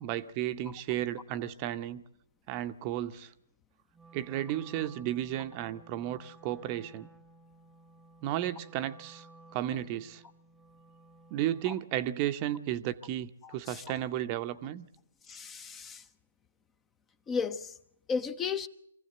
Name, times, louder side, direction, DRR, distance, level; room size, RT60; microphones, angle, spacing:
voice 1, 0.0-2.0 2.5-3.3 4.1-7.1 8.2-9.3 9.5-10.2 11.3-14.9, right 12 dB, 30° right, 0.8 m, -33 dB
Wind instrument woodwind instrument, 3.9-11.9, right 2 dB, ahead, 1.1 m, -56 dB
voice 2, 13.4-13.8 15.3-16.1 17.3-17.8 18.1-18.7, left 5 dB, 15° left, 0.7 m, -34 dB
23.0 x 15.5 x 7.8 m
hypercardioid pair, 135°, 0 cm